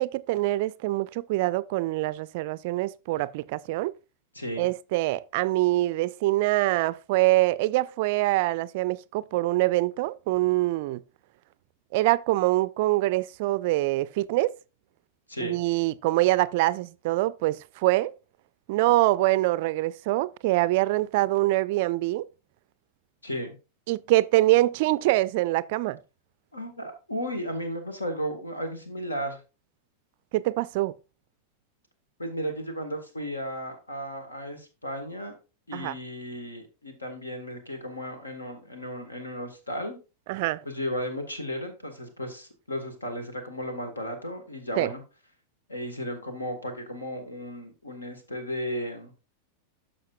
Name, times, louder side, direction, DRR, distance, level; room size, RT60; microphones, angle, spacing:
voice 1, 0.0-3.9 4.6-11.0 11.9-14.5 15.4-18.1 18.7-22.2 23.9-26.0 30.3-30.9 35.7-35.9 40.3-40.6 44.8-44.9, right 18 dB, 50° right, 0.3 m, -24 dB
voice 2, 4.4-4.7 15.3-15.6 23.2-23.6 26.5-29.4 32.2-35.3 35.7-40.0 40.7-45.0 45.7-49.1, equal, 80° left, 1.6 m, -34 dB
13.0 x 5.2 x 2.4 m
figure-of-eight pair, 90°, 0 cm